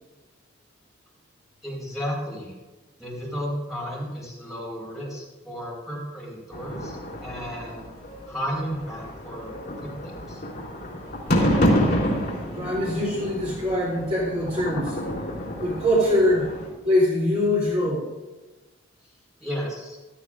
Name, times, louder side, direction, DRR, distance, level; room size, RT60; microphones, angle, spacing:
voice 1, 1.6-2.5 3.0-7.9 8.3-10.4 19.4-20.0, equal, ahead, -5 dB, 4.7 m, -33 dB
sound 1, 6.5-16.7, equal, 50° left, 3.4 m, -28 dB
voice 2, 12.5-15.0 15.6-16.5 16.8-18.1, left 1 dB, 30° right, -5 dB, 3.1 m, -23 dB
16.0 x 13.5 x 2.5 m, 1.2 s
head